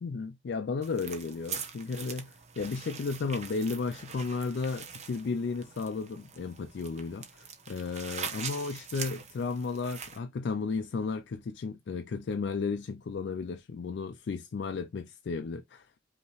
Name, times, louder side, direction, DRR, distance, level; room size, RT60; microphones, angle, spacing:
voice 1, 0.0-15.9, left 4 dB, 65° left, 0.4 m, -34 dB
sound 1, 0.8-10.2, right 6 dB, 35° right, 0.8 m, -43 dB
5.3 x 2.8 x 3.0 m
head